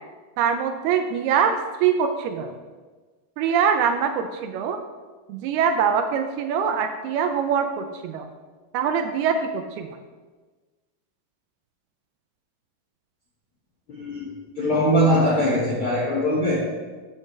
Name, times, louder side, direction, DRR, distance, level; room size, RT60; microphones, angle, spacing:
voice 1, 0.4-2.5 3.4-4.8 5.3-8.3 8.7-9.9, right 7 dB, 85° right, 6 dB, 2.4 m, -23 dB
voice 2, 14.0-14.3 14.6-16.7, equal, 60° left, -7 dB, 1.4 m, -21 dB
11.5 x 8.2 x 3.3 m, 1.3 s
omnidirectional pair, 4.8 m